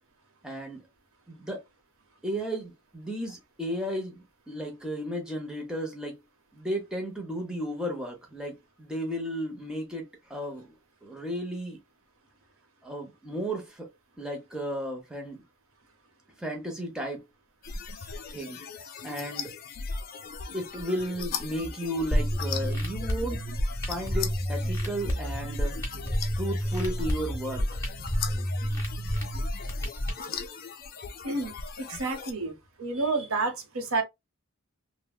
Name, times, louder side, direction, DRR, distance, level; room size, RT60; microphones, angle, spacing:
voice 1, 0.4-0.8 1.3-1.6 2.2-6.2 6.5-10.7 11.0-11.8 12.8-13.9 14.2-15.4 16.4-17.3 18.3-18.6 19.0-19.5 20.5-23.4 23.9-25.8 26.4-27.8, equal, 5° right, 0.6 m, -34 dB
sound 1, 17.6-32.3, left 5 dB, 45° left, 0.4 m, -38 dB
sound 2, 22.1-30.1, equal, 10° left, 1.0 m, -30 dB
voice 2, 31.8-34.0, right 3 dB, 80° right, 0.8 m, -30 dB
3.2 x 2.1 x 2.3 m
head